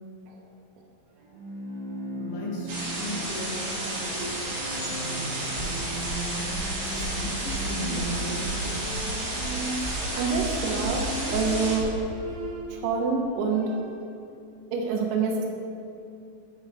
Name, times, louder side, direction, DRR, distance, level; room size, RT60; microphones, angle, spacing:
Bowed string instrument, 1.2-12.9 13.3-14.1, right 1 dB, 70° right, 2.2 m, -37 dB
voice 1, 2.2-4.5 4.9-5.9 6.9-8.8, left 1 dB, 75° left, -4 dB, 3.3 m, -37 dB
sound 1, 2.7-11.8, right 1 dB, 55° right, 2.5 m, -32 dB
sound 2, 5.5-12.1, right 1 dB, 55° left, 3.1 m, -35 dB
voice 2, 9.8-12.0 12.7-13.7 14.7-15.5, right 4 dB, 90° right, 0 dB, 3.2 m, -27 dB
9.5 x 4.7 x 3.3 m, 2.5 s
omnidirectional pair, 5.2 m